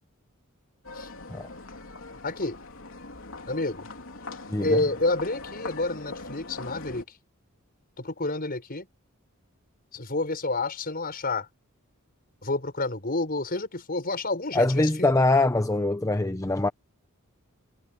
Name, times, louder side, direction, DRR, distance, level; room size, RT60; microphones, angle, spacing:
sound 1, 0.8-7.0, left 3 dB, 65° left, 3.6 m, -41 dB
voice 1, 2.2-2.6 3.5-3.8 4.6-7.0 8.0-8.9 9.9-11.5 12.4-15.1, left 2 dB, 45° left, 5.5 m, -29 dB
voice 2, 4.5-4.8 14.5-16.7, left 2 dB, 15° left, 0.7 m, -23 dB
head